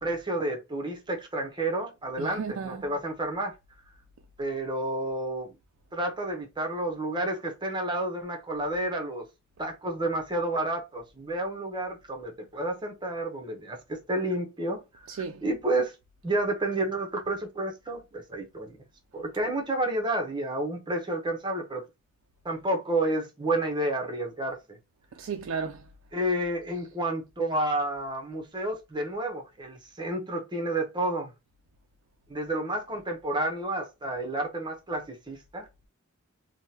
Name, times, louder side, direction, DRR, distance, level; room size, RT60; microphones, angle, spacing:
voice 1, 0.0-3.5 4.4-5.5 5.9-9.3 9.6-15.9 16.2-18.8 19.1-21.8 22.4-24.6 26.1-31.3 32.3-35.7, right 1 dB, 20° right, 0.8 m, -30 dB
voice 2, 2.2-2.9 15.1-15.4 25.2-25.8, right 6 dB, 70° right, 0.4 m, -34 dB
3.5 x 2.1 x 2.8 m
head